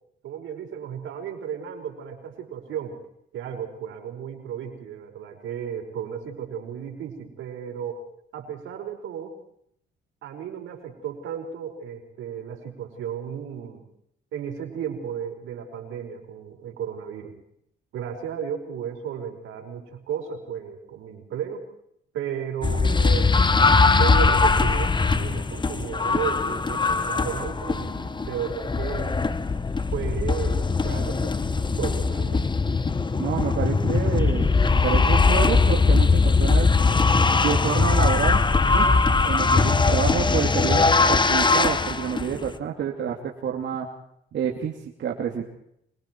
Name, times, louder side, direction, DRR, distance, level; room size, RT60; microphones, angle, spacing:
voice 1, 0.2-3.0 3.3-8.0 8.3-9.3 10.2-13.8 14.3-17.3 17.9-21.7 22.1-23.3 23.9-29.2 29.9-32.6 39.4-39.8, right 8 dB, 80° right, 3 dB, 5.1 m, -34 dB
sound 1, 22.6-42.5, left 4 dB, 25° left, 1.2 m, -21 dB
voice 2, 33.2-36.7 37.4-38.4 38.7-38.9 39.2-43.9 44.3-45.4, right 8 dB, 65° right, 0 dB, 2.7 m, -28 dB
25.5 x 23.0 x 4.6 m, 0.71 s
cardioid pair, 90°, 20 cm